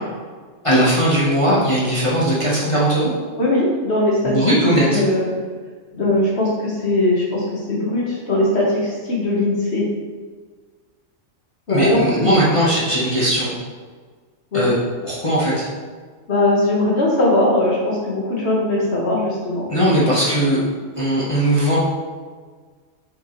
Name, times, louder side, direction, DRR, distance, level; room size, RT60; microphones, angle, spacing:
voice 1, 0.6-3.1 4.2-5.0 11.7-13.5 14.5-14.7 15.0-15.6 19.7-20.6 21.0-21.8, equal, 25° left, -8 dB, 1.3 m, -18 dB
voice 2, 3.4-4.3 4.9-5.3 5.9-9.8 11.7-12.4 14.5-14.7 16.3-19.7, left 1 dB, 55° left, -4 dB, 1.8 m, -20 dB
7.7 x 5.0 x 3.3 m, 1.5 s
omnidirectional pair, 1.3 m